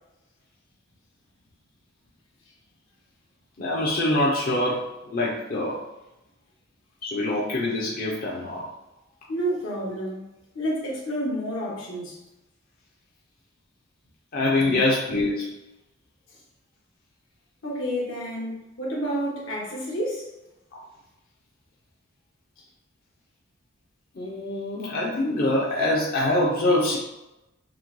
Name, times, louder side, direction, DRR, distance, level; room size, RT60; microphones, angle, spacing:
voice 1, 3.6-5.8 7.0-8.6 14.3-15.5 24.2-27.0, left 2 dB, 50° left, -5 dB, 0.7 m, -24 dB
voice 2, 9.3-10.2 10.5-12.2 14.7-14.8 17.6-18.5 18.8-20.2, equal, 80° left, -4 dB, 1.4 m, -29 dB
6.1 x 2.2 x 3.1 m, 0.96 s
head